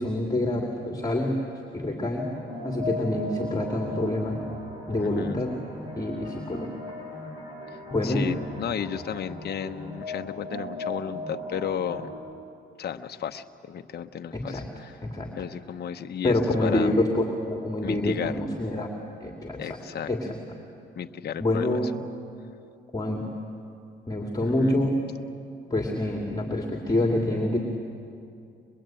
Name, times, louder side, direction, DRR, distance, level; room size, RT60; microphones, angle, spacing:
voice 1, 0.0-1.4 1.7-2.3 2.6-4.4 4.9-5.5 6.0-6.7 7.9-8.2 14.3-14.7 15.0-15.3 16.2-18.9 19.2-19.8 20.1-20.4 21.4-21.9 22.9-23.2 24.1-25.0 25.7-27.6, left 1 dB, 20° left, 1 dB, 2.6 m, -26 dB
sound 1, 2.2-12.2, left 1 dB, 25° right, 6.7 m, -38 dB
voice 2, 5.0-5.4 8.0-12.1 12.8-14.9 15.3-17.0 17.8-18.3 19.6-20.1 21.0-21.7 24.4-24.8, left 8 dB, 55° left, 6 dB, 1.0 m, -33 dB
23.0 x 22.0 x 9.0 m, 2.5 s
cardioid pair, 90°, 20 cm